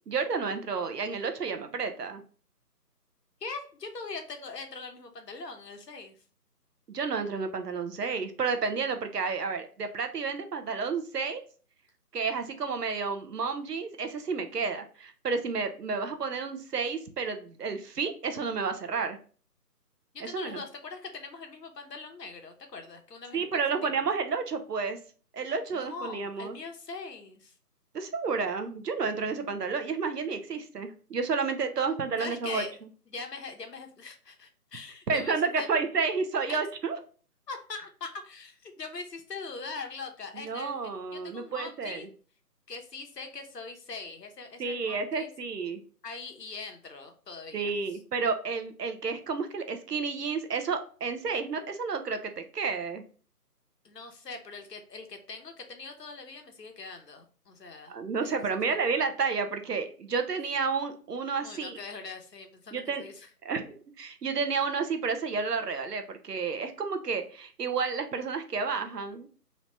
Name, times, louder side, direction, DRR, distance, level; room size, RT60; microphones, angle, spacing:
voice 1, 0.1-2.2 6.9-11.4 12.1-19.2 20.2-20.6 23.3-25.0 25.3-26.5 27.9-32.6 35.1-37.0 40.3-42.0 44.6-45.8 47.5-53.0 57.9-61.8 62.7-63.0 63.4-63.7 64.0-69.3, right 5 dB, 75° right, 7 dB, 0.7 m, -31 dB
voice 2, 3.4-6.2 20.1-23.9 25.7-27.5 32.2-32.8 33.1-35.7 36.5-36.6 37.5-42.1 42.7-45.3 46.0-48.0 53.8-58.8 61.4-63.3, left 4 dB, 85° left, 5 dB, 0.9 m, -42 dB
3.1 x 2.8 x 3.1 m, 0.41 s
figure-of-eight pair, 175°, 48 cm